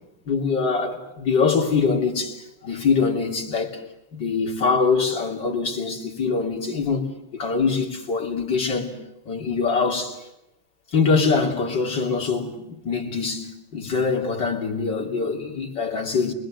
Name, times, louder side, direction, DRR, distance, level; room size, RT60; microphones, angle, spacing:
voice 1, 0.3-3.8 4.1-7.0 7.3-8.9 9.3-10.2 10.9-16.3, left 5 dB, 65° left, 4.0 m, -23 dB
30.0 x 21.5 x 7.7 m
omnidirectional pair, 2.1 m